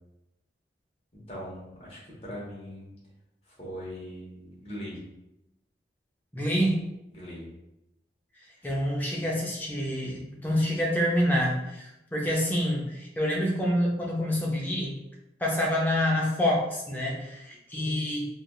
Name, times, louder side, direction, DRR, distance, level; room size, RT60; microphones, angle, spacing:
voice 1, 1.1-2.9 3.6-5.0 7.1-7.4, equal, 35° left, -6 dB, 1.0 m, -40 dB
voice 2, 6.3-6.8 8.6-15.0 15.4-18.3, equal, 10° left, -3 dB, 0.4 m, -27 dB
3.3 x 2.3 x 2.3 m, 0.92 s
head